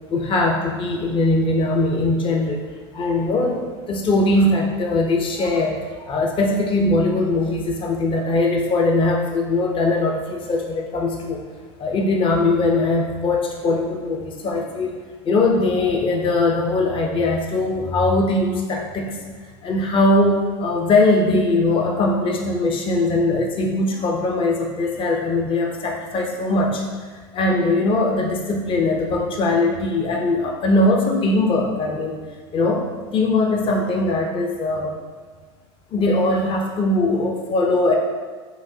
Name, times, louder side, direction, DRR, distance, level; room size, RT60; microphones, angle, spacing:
voice 1, 0.1-2.6 2.9-11.4 11.8-15.0 15.2-19.2 19.6-26.8 27.3-32.2 32.5-32.8 33.1-34.9 35.9-37.9, left 2 dB, 35° left, 1 dB, 0.7 m, -20 dB
5.9 x 2.5 x 2.8 m, 1.5 s
supercardioid pair, 95°, 14 cm